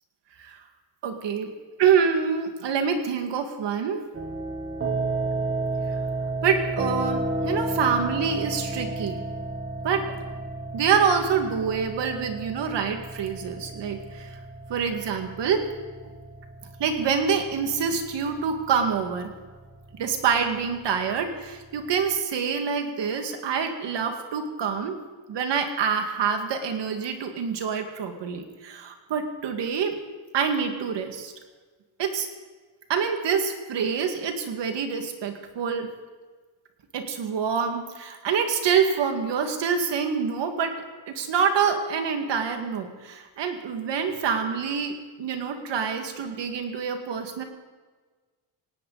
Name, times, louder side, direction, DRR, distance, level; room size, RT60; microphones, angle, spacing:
voice 1, 1.0-1.5 1.8-4.0 6.4-9.2 9.8-10.1 10.7-14.4 14.7-15.7 16.8-19.3 19.9-25.0 25.3-30.0 30.3-31.3 32.0-32.3 32.9-35.9 36.9-47.4, right 6 dB, 70° right, 5 dB, 2.2 m, -26 dB
sound 1, 4.1-22.1, right 2 dB, 30° right, 2.1 m, -33 dB
18.5 x 17.5 x 4.1 m, 1.4 s
cardioid pair, 120°, 44 cm